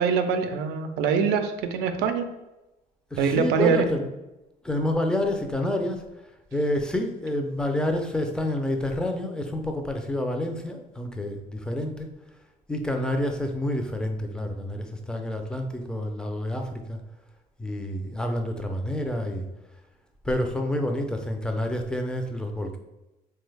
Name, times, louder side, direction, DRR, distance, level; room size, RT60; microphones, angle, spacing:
voice 1, 0.0-2.3 3.2-3.9, right 6 dB, 90° right, 8 dB, 0.4 m, -24 dB
voice 2, 3.1-4.1 4.6-6.1 6.5-12.1 12.7-17.0 17.6-19.5 20.2-22.8, left 1 dB, 5° left, 4 dB, 0.4 m, -28 dB
3.4 x 2.3 x 3.2 m, 0.98 s
cardioid pair, 110°, 17 cm